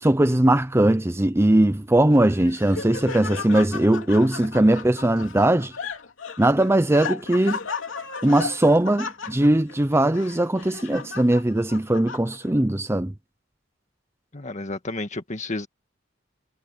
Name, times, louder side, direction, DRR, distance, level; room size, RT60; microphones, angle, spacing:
voice 1, 0.0-5.7 6.4-7.6 8.2-13.1, right 1 dB, 15° right, 0.7 m, -20 dB
Laughter, 2.1-12.6, left 5 dB, 85° left, 2.9 m, -35 dB
voice 2, 14.3-15.7, left 2 dB, 40° left, 1.8 m, -31 dB
head